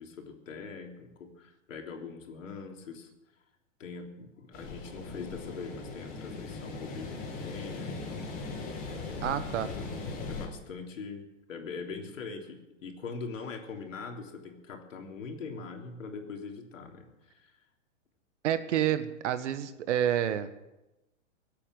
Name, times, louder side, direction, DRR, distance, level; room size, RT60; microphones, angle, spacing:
voice 1, 0.0-3.1 3.8-8.6 9.0-9.6 10.3-17.5, left 4 dB, 90° left, 3 dB, 3.4 m, -42 dB
sound 1, 4.5-10.5, left 3 dB, 25° left, 4.2 m, -39 dB
voice 2, 9.2-9.7 18.4-20.5, right 10 dB, 70° right, 12 dB, 1.5 m, -29 dB
17.5 x 8.6 x 9.2 m, 0.98 s
hypercardioid pair, 155°, 37 cm